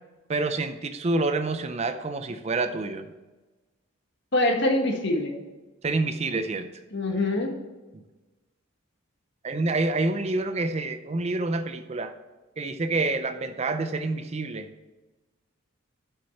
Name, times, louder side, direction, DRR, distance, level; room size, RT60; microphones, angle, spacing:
voice 1, 0.3-3.1 5.8-6.7 9.4-12.1 12.6-14.7, right 3 dB, 30° right, 10 dB, 0.5 m, -27 dB
voice 2, 4.3-5.4 6.9-7.5, left 1 dB, 55° left, 3 dB, 1.5 m, -24 dB
7.1 x 6.4 x 6.6 m, 1.2 s
head